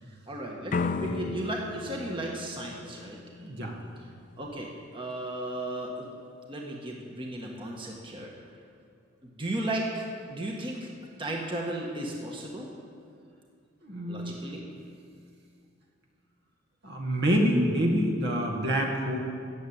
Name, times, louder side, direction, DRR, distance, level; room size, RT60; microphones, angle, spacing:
voice 1, 0.3-3.2 4.4-6.1 6.5-8.3 9.2-10.0 10.3-10.9 11.2-12.7 14.1-14.6, right 1 dB, 25° right, -1 dB, 1.5 m, -35 dB
sound 1, 0.7-3.6, left 4 dB, 40° left, 0.5 m, -34 dB
voice 2, 3.4-3.8 13.8-14.5 16.8-19.2, equal, 55° right, 1 dB, 2.0 m, -27 dB
15.0 x 7.5 x 8.7 m, 2.3 s
head